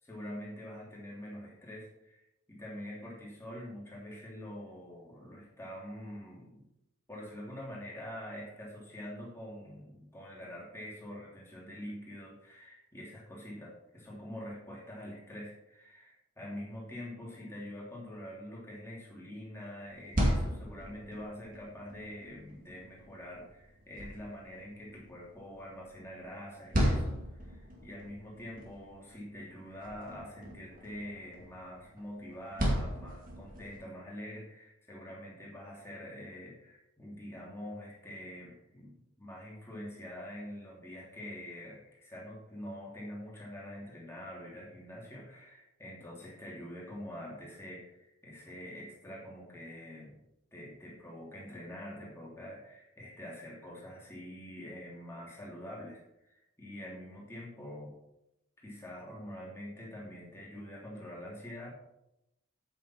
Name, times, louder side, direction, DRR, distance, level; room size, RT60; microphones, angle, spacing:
voice 1, 0.0-6.6 7.1-50.2 50.5-57.9 58.6-61.7, left 1 dB, 10° left, -4 dB, 2.9 m, -45 dB
sound 1, 19.9-33.8, equal, 40° right, 2.2 m, -37 dB
8.4 x 7.4 x 4.4 m, 0.86 s
head